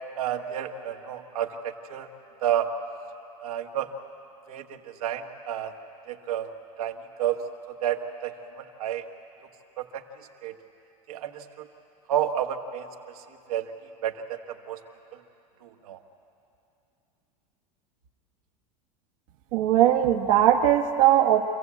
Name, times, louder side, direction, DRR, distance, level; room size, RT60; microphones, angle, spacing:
voice 1, 0.2-2.1 2.4-2.7 3.4-3.9 4.5-5.7 6.1-6.5 6.8-7.4 7.8-9.0 9.8-10.0 10.4-10.5 11.1-11.7 12.1-12.9 13.1-13.7 14.0-14.8 15.6-16.0, right 10 dB, 85° right, 2 dB, 1.5 m, -30 dB
voice 2, 19.5-21.5, right 11 dB, 65° right, 1 dB, 1.2 m, -20 dB
27.0 x 15.0 x 8.3 m, 2.8 s
supercardioid pair, 120°, 18 cm